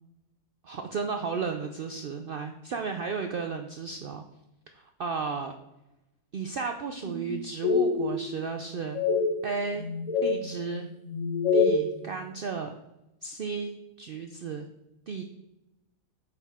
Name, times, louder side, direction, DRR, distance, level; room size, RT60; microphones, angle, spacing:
voice 1, 0.6-4.2 4.7-5.5 6.3-9.0 9.4-9.9 10.2-10.9 11.5-12.7 13.2-14.7 15.1-15.2, right 5 dB, 75° right, 5 dB, 0.5 m, -34 dB
sound 1, 7.0-7.3 7.6-8.5 8.9-9.3 9.8-10.3 11.1-11.8, left 4 dB, 30° left, 0.9 m, -25 dB
8.4 x 5.5 x 3.5 m, 0.93 s
omnidirectional pair, 1.6 m